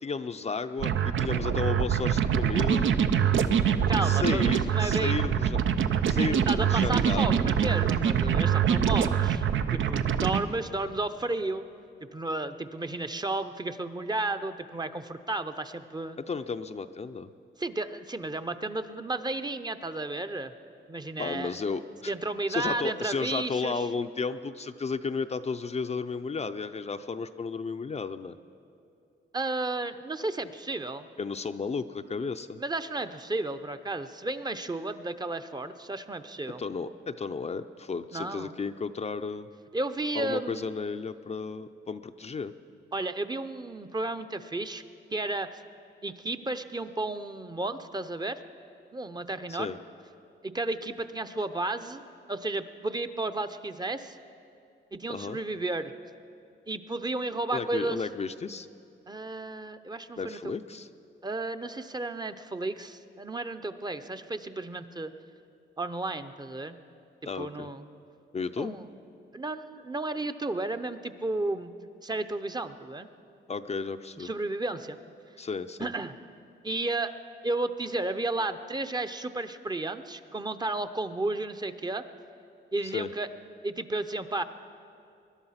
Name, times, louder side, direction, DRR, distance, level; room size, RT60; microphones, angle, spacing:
voice 1, 0.0-2.9 4.0-5.6 6.1-6.4 6.7-7.5 16.2-17.3 21.2-22.1 22.5-28.4 31.2-32.6 36.6-39.5 40.1-42.5 49.5-49.8 55.1-55.4 57.5-58.7 60.2-60.9 67.2-67.7 68.3-68.8 73.5-74.3 75.4-75.9 82.8-83.1, left 4 dB, 35° left, 9 dB, 0.5 m, -33 dB
sound 1, 0.8-10.4, right 8 dB, 80° right, 0.6 m, -24 dB
voice 2, 3.9-5.2 6.2-9.4 9.7-11.6 12.0-16.2 17.6-20.5 20.9-21.6 22.1-23.8 29.3-31.1 32.6-36.6 38.1-38.6 39.7-40.6 42.9-44.8 45.1-45.5 46.0-48.4 48.9-49.8 50.4-52.0 52.3-54.2 54.9-55.9 56.7-58.0 59.1-60.5 61.2-65.1 65.8-66.8 67.4-67.8 68.6-68.8 69.3-71.7 72.0-73.1 74.2-75.0 75.8-76.1 76.6-77.1 77.4-82.0 82.7-83.3 83.6-84.4, right 2 dB, 20° right, 9 dB, 0.7 m, -33 dB
21.0 x 11.5 x 5.7 m, 2.5 s
cardioid pair, 85°, 19 cm